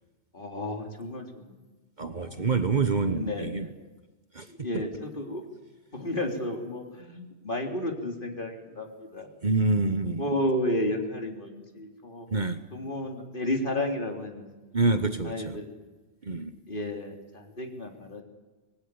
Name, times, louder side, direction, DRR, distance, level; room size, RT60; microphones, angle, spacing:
voice 1, 0.3-1.6 2.0-2.7 3.0-3.7 4.5-5.4 5.9-9.3 10.1-12.3 12.7-14.7 15.2-15.7 16.7-18.2, left 1 dB, 45° left, 2 dB, 3.4 m, -32 dB
voice 2, 2.0-3.7 4.3-4.5 9.4-10.3 12.3-12.6 14.7-15.6 16.2-16.5, right 3 dB, 40° right, 9 dB, 1.2 m, -26 dB
25.0 x 20.0 x 9.7 m, 1.2 s
omnidirectional pair, 1.2 m